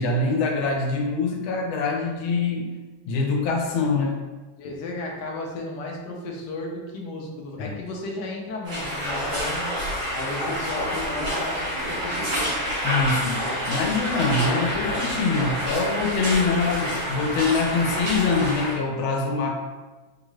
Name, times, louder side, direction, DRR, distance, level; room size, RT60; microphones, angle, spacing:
voice 1, 0.0-2.7 3.0-4.2 7.6-7.8 12.8-19.5, left 4 dB, 85° left, 1 dB, 1.5 m, -24 dB
voice 2, 4.6-12.5 14.2-14.8, left 2 dB, 65° left, -1 dB, 1.2 m, -34 dB
sound 1, 8.6-18.7, equal, 75° right, 2.1 m, -28 dB
4.5 x 2.5 x 3.1 m, 1.2 s
omnidirectional pair, 2.2 m